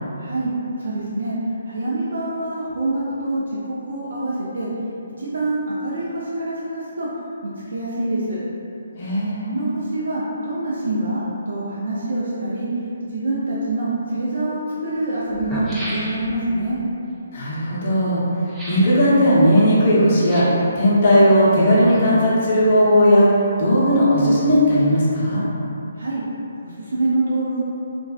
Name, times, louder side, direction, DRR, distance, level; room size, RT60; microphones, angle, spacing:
voice 1, 0.2-0.5 0.8-1.3 1.7-4.7 5.2-7.1 7.7-8.4 9.5-12.7 13.1-16.8 26.0-26.2 26.6-27.6, right 2 dB, 75° right, -8 dB, 0.4 m, -25 dB
voice 2, 9.0-9.5 17.3-18.2 18.7-23.3 23.6-25.4, equal, 45° left, -7 dB, 0.7 m, -16 dB
sound 1, 14.9-15.0 15.3-16.5 18.5-19.0 20.1-20.7 21.5-22.3 22.6-22.7, equal, 10° right, 0.4 m, -33 dB
2.4 x 2.2 x 2.3 m, 2.8 s
hypercardioid pair, 145°, 0 cm